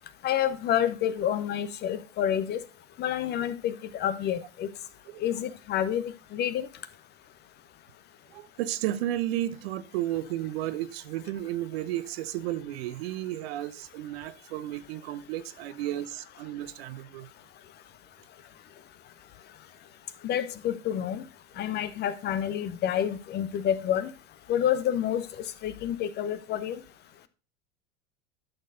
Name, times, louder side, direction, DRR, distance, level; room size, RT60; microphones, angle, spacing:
voice 1, 0.2-2.6 3.0-4.7 5.2-6.0 6.3-6.7 20.2-21.2 21.6-24.1 24.5-26.8, left 10 dB, 25° left, 0.5 m, -28 dB
voice 2, 8.3-17.3, right 13 dB, 50° right, 0.7 m, -33 dB
11.5 x 6.5 x 2.5 m
figure-of-eight pair, 85°, 38 cm